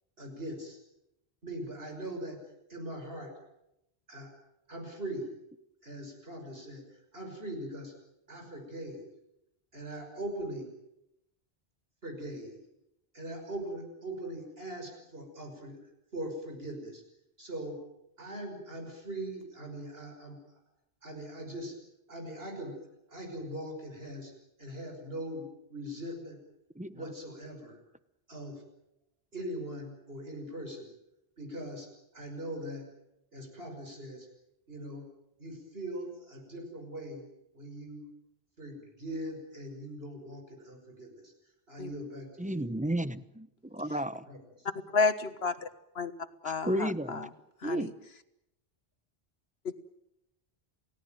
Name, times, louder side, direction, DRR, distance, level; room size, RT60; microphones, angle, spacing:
voice 1, 0.2-0.8 1.4-2.4 2.7-3.3 4.1-4.3 4.7-5.3 5.8-6.8 7.1-7.9 8.3-9.0 9.7-10.7 12.0-12.5 13.1-15.8 16.1-17.0 17.4-17.8 18.2-20.4 21.0-21.7 22.1-22.8 23.1-24.3 24.6-26.4 26.9-27.8 28.3-28.6 29.3-30.9 31.4-31.9 32.1-32.9 33.3-34.3 34.7-35.0 35.4-37.3 37.5-38.0 38.6-41.3 41.7-42.7 44.3-44.4, right 1 dB, 70° right, 3 dB, 6.3 m, -41 dB
voice 2, 26.8-27.1 42.4-44.2 46.7-47.3 47.6-47.9, right 1 dB, 10° right, 13 dB, 0.9 m, -33 dB
voice 3, 44.9-45.7 46.0-46.1 46.4-47.2 47.6-47.9 49.7-49.8, left 4 dB, 75° left, 10 dB, 1.8 m, -30 dB
29.5 x 17.5 x 9.2 m, 0.87 s
omnidirectional pair, 1.0 m